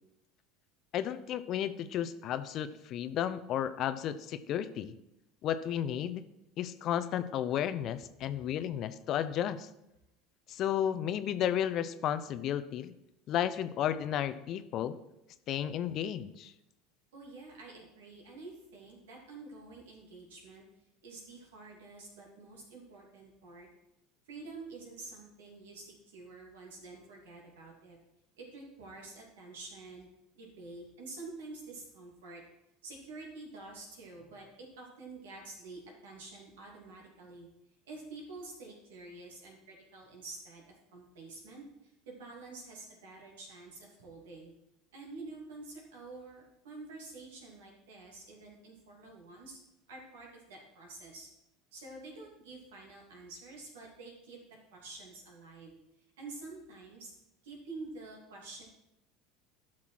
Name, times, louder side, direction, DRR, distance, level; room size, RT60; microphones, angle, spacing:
voice 1, 0.9-4.9 5.4-6.2 6.6-9.7 10.5-12.9 13.3-15.0 15.5-16.5, left 10 dB, 50° left, 12 dB, 0.6 m, -33 dB
voice 2, 17.1-20.6 21.0-23.7 24.3-28.0 28.4-30.1 30.3-32.4 32.8-37.5 37.9-44.5 44.9-49.6 49.9-51.3 51.7-54.4 54.7-55.8 56.2-57.1 57.4-58.6, right 3 dB, 75° right, -1 dB, 2.9 m, -48 dB
11.5 x 6.1 x 4.6 m, 0.87 s
hypercardioid pair, 75°, 0 cm